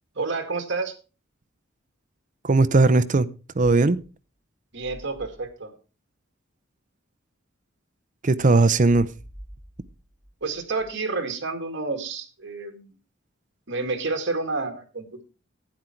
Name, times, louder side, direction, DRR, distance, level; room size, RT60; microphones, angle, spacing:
voice 1, 0.2-0.9 4.7-5.7 10.4-12.9 13.7-15.2, right 3 dB, 60° right, 2.2 m, -29 dB
voice 2, 2.4-3.3 3.6-4.0 8.2-9.1, right 3 dB, 40° right, 0.6 m, -18 dB
sound 1, 4.0-4.1 4.7-5.5 8.3-10.9, equal, 35° left, 6.9 m, -46 dB
11.5 x 9.8 x 4.5 m
head